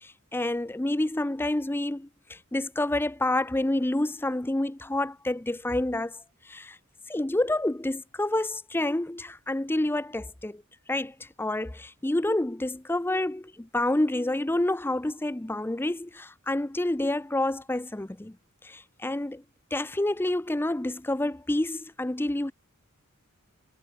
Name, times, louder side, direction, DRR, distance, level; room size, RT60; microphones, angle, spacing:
voice 1, 0.0-6.2 6.5-6.8 7.1-10.6 10.9-18.3 18.6-19.4 19.7-22.5, left 1 dB, 10° left, 0.5 m, -28 dB
head